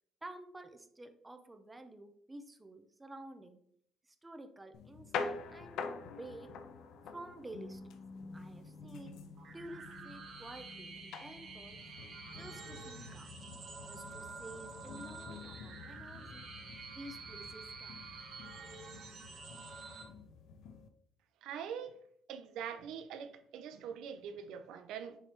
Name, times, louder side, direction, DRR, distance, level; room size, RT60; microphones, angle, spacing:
voice 1, 0.2-3.6 4.1-6.5 7.1-7.8 8.3-9.2 9.5-11.8 12.4-13.3 13.8-16.5 16.9-18.0, right 1 dB, 15° right, 7 dB, 0.7 m, -51 dB
sound 1, 4.7-20.9, left 5 dB, 75° left, 0.6 m, -47 dB
sound 2, 9.4-20.0, right 4 dB, 55° right, 1.3 m, -49 dB
voice 2, 21.4-22.0 22.3-25.2, right 8 dB, 85° right, 9 dB, 0.6 m, -43 dB
7.0 x 3.3 x 4.4 m, 0.67 s
cardioid pair, 115°, 0 cm